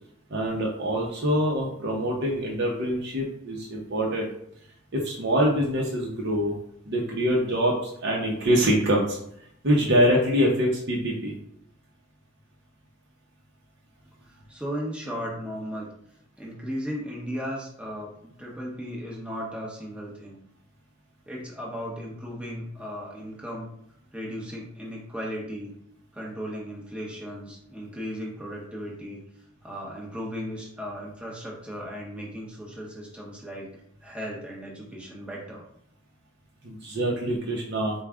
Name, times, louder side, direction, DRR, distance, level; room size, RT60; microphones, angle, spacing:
voice 1, 0.3-4.3 4.9-6.5 6.9-9.2 9.6-11.3 36.6-37.9, equal, 55° right, -2 dB, 0.7 m, -24 dB
voice 2, 14.5-15.9 16.4-18.1 18.4-20.4 21.3-23.7 24.1-25.7 26.1-29.2 29.6-33.8 34.0-35.6, equal, 5° right, -3 dB, 0.9 m, -36 dB
4.8 x 2.3 x 3.5 m, 0.71 s
head